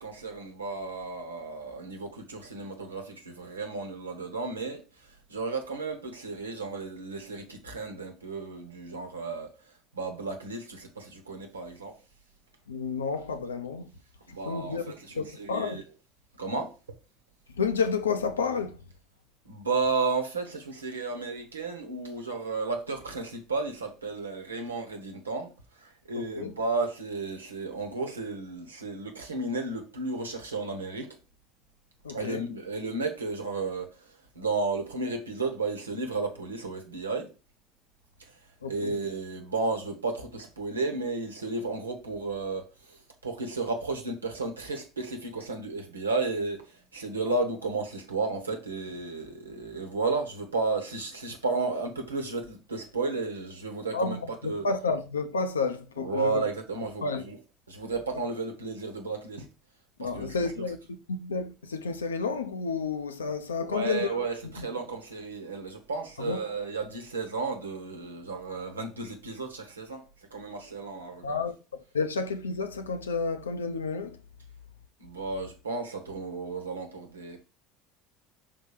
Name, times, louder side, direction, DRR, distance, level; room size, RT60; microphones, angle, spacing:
voice 1, 0.0-12.0 14.3-15.8 16.4-17.0 19.4-31.2 32.1-37.3 38.2-54.7 56.0-57.4 57.7-59.5 60.0-60.6 63.6-71.4 75.0-77.4, right 3 dB, 85° right, 1.1 m, -33 dB
voice 2, 12.7-13.9 14.3-15.8 17.6-18.8 26.4-26.5 32.0-32.4 38.6-39.0 53.9-56.3 57.0-57.2 60.0-60.8 61.1-64.1 64.6-64.7 66.2-66.4 71.2-71.6 71.9-74.2, left 4 dB, 80° left, 0.6 m, -30 dB
5.4 x 3.8 x 4.8 m
figure-of-eight pair, 65°, 0 cm